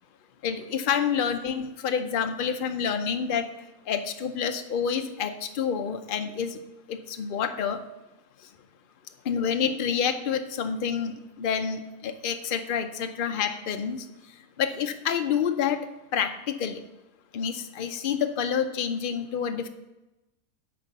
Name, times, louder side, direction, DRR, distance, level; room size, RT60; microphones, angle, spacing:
voice 1, 0.4-3.5 3.9-6.6 6.9-7.8 9.3-11.1 11.4-14.0 14.6-15.8 16.1-16.8 17.3-19.7, left 7 dB, 70° left, 7 dB, 0.5 m, -28 dB
10.0 x 4.4 x 6.6 m, 0.99 s
omnidirectional pair, 1.7 m